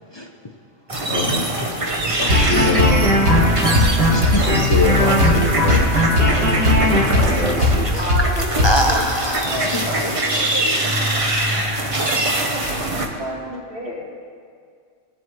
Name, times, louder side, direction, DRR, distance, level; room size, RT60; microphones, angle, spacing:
sound 1, 0.9-13.1, right 1 dB, 30° right, 0.9 m, -24 dB
voice 1, 1.1-1.5 2.5-3.1 4.4-5.9 6.2-8.0, left 3 dB, 65° left, 1 dB, 1.5 m, -24 dB
voice 2, 1.9-2.4 4.1-4.4 8.6-10.8 11.0-11.3 11.9-12.5, equal, 40° left, 2 dB, 0.4 m, -25 dB
sound 2, 2.3-7.8 8.1-8.3 8.6-8.7, left 1 dB, 80° right, 3.0 m, -17 dB
voice 3, 7.8-9.0 9.4-10.1 13.0-14.1, equal, 50° right, -8 dB, 3.1 m, -30 dB
18.5 x 7.5 x 3.1 m, 2.2 s
omnidirectional pair, 1.4 m